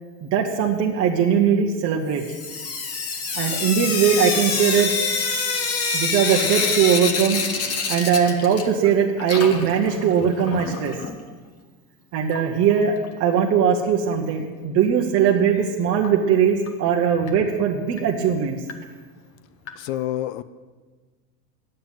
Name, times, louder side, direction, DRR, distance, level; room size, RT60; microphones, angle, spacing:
voice 1, 0.2-2.2 3.3-5.0 5.9-7.4 7.9-10.9 12.1-12.9 13.2-18.6, right 7 dB, 30° right, -2 dB, 1.1 m, -20 dB
Sink (filling or washing) / Drip, 2.2-8.9 9.2-11.1 12.3-12.4 12.7-12.8 13.0-13.1 16.0-16.1 16.7-16.8 17.3-17.4 18.0-18.1 18.7-18.8 19.7-19.8, left 4 dB, 30° left, 1.3 m, -26 dB
voice 2, 19.8-20.4, left 13 dB, 45° left, 15 dB, 0.6 m, -27 dB
8.9 x 7.8 x 9.0 m, 1.4 s
supercardioid pair, 125°, 48 cm